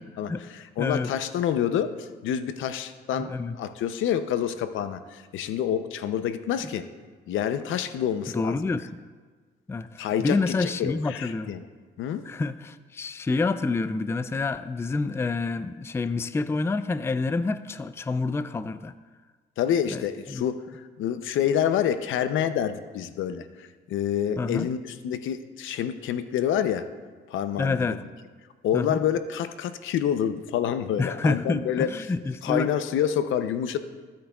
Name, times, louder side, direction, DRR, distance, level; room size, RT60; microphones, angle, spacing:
voice 1, 0.2-6.9 7.3-8.7 10.0-11.7 12.0-12.3 19.6-26.9 27.3-28.0 28.6-31.9 32.4-33.8, left 9 dB, 80° left, 10 dB, 0.6 m, -28 dB
voice 2, 0.8-1.1 3.2-3.6 8.3-8.9 9.7-11.5 12.2-18.9 19.9-20.0 20.3-20.4 24.4-24.7 27.6-28.0 28.7-29.0 31.0-32.7, left 3 dB, 15° left, 13 dB, 0.3 m, -28 dB
15.5 x 8.7 x 2.3 m, 1.4 s
cardioid pair, 90°, 20 cm